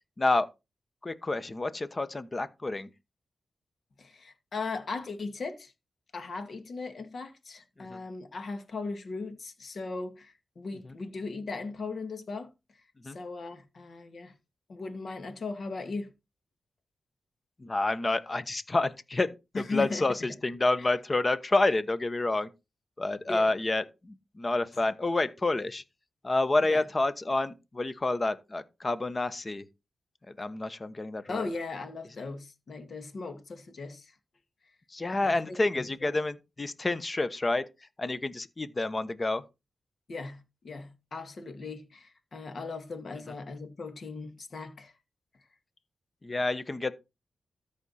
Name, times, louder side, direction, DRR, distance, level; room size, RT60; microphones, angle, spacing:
voice 1, 0.2-0.5 1.0-2.9 7.8-8.0 13.0-13.2 17.6-22.5 23.0-25.8 26.2-29.7 30.4-31.5 34.9-37.6 38.0-39.4 46.2-46.9, left 2 dB, 30° left, 1.0 m, -29 dB
voice 2, 4.0-5.7 6.1-12.5 13.0-14.3 14.7-16.1 19.5-20.1 20.8-20.9 23.3-23.6 26.7-26.8 31.3-34.2 35.2-36.1 40.1-44.9, left 3 dB, 60° left, 2.0 m, -38 dB
13.5 x 5.1 x 4.2 m
cardioid pair, 85°, 0 cm